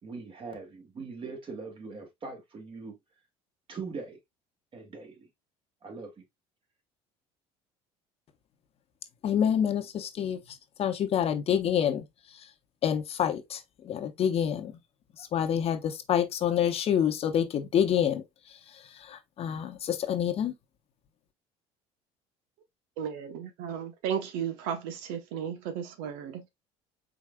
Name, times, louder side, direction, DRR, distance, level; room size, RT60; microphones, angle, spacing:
voice 1, 0.0-3.0 3.7-4.2 4.7-5.3 5.8-6.2, right 4 dB, 40° right, 2.1 m, -41 dB
voice 2, 9.2-10.4 10.8-12.0 12.8-13.6 13.8-14.7 15.3-18.2 19.1-20.5, left 9 dB, 45° left, 0.9 m, -27 dB
voice 3, 23.0-26.5, right 8 dB, 80° right, 0.9 m, -34 dB
4.9 x 3.9 x 2.2 m
supercardioid pair, 95°, 14 cm